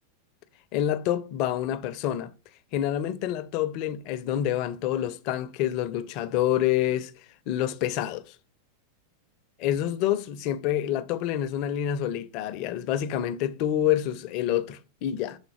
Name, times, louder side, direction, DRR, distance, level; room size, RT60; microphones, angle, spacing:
voice 1, 0.7-2.3 2.7-7.1 7.5-8.3 9.6-15.4, left 11 dB, 40° left, 0.5 m, -27 dB
5.6 x 3.9 x 4.4 m
figure-of-eight pair, 90°, 0 cm